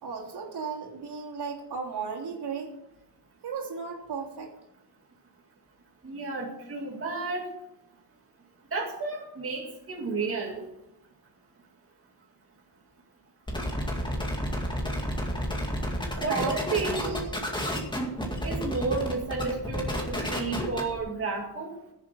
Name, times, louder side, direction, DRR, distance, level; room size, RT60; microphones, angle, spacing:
voice 1, 0.0-2.7 3.4-4.5 16.1-16.6 17.0-17.4, right 5 dB, 70° right, -2 dB, 3.1 m, -35 dB
voice 2, 6.0-7.5 8.7-10.6 16.2-17.0 18.4-21.7, right 3 dB, 35° right, -1 dB, 2.1 m, -31 dB
sound 1, 13.5-21.0, equal, 10° left, 2.2 m, -31 dB
16.0 x 7.2 x 6.1 m, 0.87 s
wide cardioid pair, 165°, 40 cm